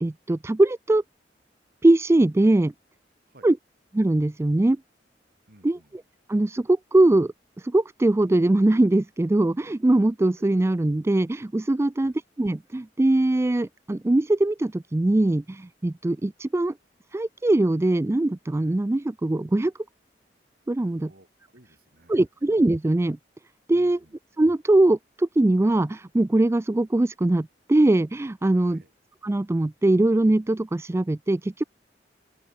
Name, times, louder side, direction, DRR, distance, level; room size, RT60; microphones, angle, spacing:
voice 1, 0.0-1.0 1.8-2.7 3.4-3.6 3.9-4.8 5.6-5.8 6.3-12.1 12.4-16.7 17.1-19.7 20.7-21.1 22.1-23.2 23.7-24.0 24.4-28.8 29.2-31.6, right 2 dB, 15° right, 0.3 m, -21 dB
voice 2, 5.5-6.0 10.4-10.5 12.0-12.2 20.9-22.2 23.7-24.2 28.6-28.9, right 1 dB, 60° right, 4.3 m, -56 dB
open air
head